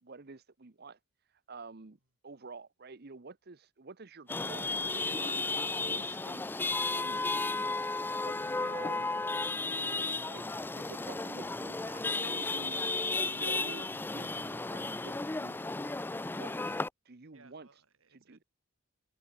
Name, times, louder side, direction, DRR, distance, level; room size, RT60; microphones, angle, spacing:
voice 1, 0.0-1.0 1.5-2.0 2.2-5.4 5.8-6.4 6.9-7.7 8.2-9.1 9.8-12.8 13.2-15.6 16.2-16.8 17.0-17.7 18.1-18.4, right 3 dB, 45° right, 0.8 m, -49 dB
Chatter / Vehicle horn car horn honking / Traffic noise roadway noise, 4.3-16.9, left 3 dB, 10° left, 0.3 m, -34 dB
voice 2, 17.3-18.4, right 3 dB, 65° right, 5.7 m, -63 dB
open air
head